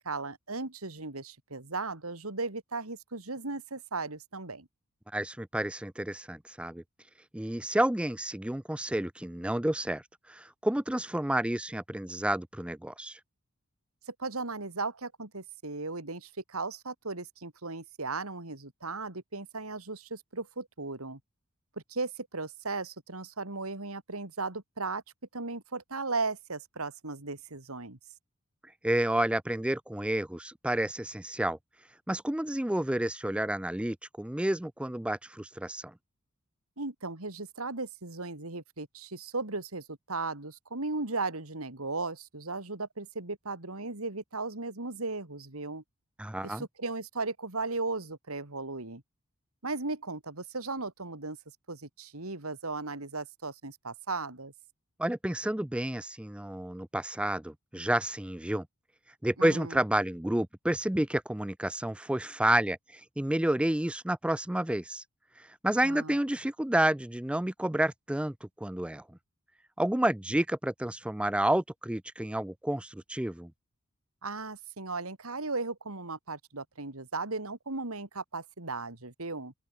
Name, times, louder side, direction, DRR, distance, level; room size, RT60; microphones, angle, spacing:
voice 1, 0.0-4.7 14.1-21.2 21.9-25.0 25.3-28.0 36.8-45.8 46.4-49.0 49.6-51.4 51.7-54.5 59.4-59.8 65.8-66.2 74.2-79.5, right 3 dB, 85° right, 3.2 m, -36 dB
voice 2, 5.1-6.8 7.3-10.0 10.3-13.2 28.8-31.6 32.1-35.9 46.2-46.7 55.0-58.7 59.2-65.0 65.4-69.0 69.8-73.5, right 1 dB, 5° right, 0.4 m, -30 dB
open air
head